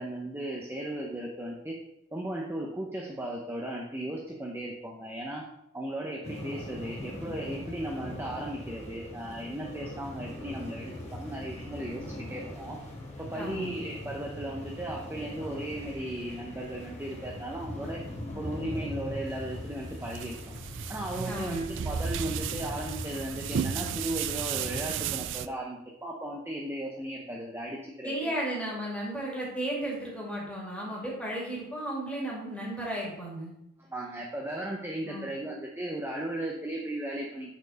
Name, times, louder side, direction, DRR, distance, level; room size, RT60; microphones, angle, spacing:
voice 1, 0.0-1.8 2.1-5.4 5.7-12.8 13.2-18.0 18.3-20.4 20.9-28.3 33.8-37.6, right 1 dB, 10° right, -1 dB, 0.7 m, -36 dB
sound 1, 6.2-25.0, left 1 dB, 30° left, 1.5 m, -41 dB
voice 2, 13.3-13.8 21.2-21.7 28.0-33.5 35.0-35.3, right 1 dB, 5° left, -4 dB, 2.3 m, -34 dB
sound 2, 19.3-25.5, right 8 dB, 55° right, 0.3 m, -34 dB
6.7 x 4.4 x 6.3 m, 0.82 s
head